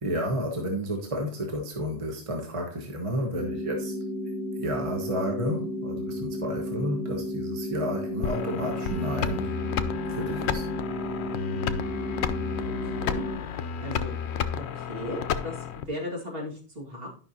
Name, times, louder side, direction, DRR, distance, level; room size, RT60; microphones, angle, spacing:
voice 1, 0.0-4.0 4.6-9.5 10.1-10.7, equal, 30° right, 1 dB, 1.2 m, -31 dB
sound 1, 3.3-13.3, left 1 dB, 75° right, 4.5 m, -33 dB
sound 2, 8.2-15.8, left 7 dB, 80° left, 0.9 m, -32 dB
voice 2, 12.8-13.2 13.6-14.1 14.7-17.1, left 1 dB, 60° right, -2 dB, 2.4 m, -36 dB
11.0 x 5.5 x 2.8 m, 0.39 s
omnidirectional pair, 1.1 m